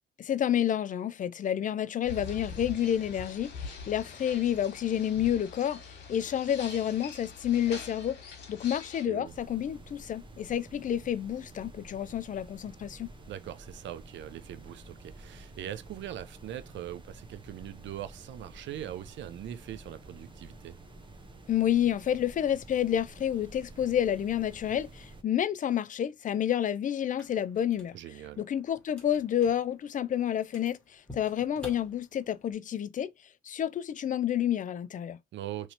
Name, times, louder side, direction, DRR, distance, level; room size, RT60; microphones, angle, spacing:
voice 1, 0.2-13.1 21.5-28.0 28.4-33.1 33.4-35.2, left 10 dB, 40° left, 0.4 m, -29 dB
sound 1, 2.0-9.0, left 4 dB, 60° left, 1.4 m, -43 dB
voice 2, 9.0-9.3 13.3-20.8 27.9-28.4 35.3-35.7, right 12 dB, 65° right, 0.5 m, -41 dB
sound 2, 9.2-25.2, right 2 dB, 25° right, 0.7 m, -50 dB
sound 3, 27.0-32.5, left 1 dB, 5° left, 1.4 m, -52 dB
3.0 x 2.8 x 2.8 m
cardioid pair, 90°, 20 cm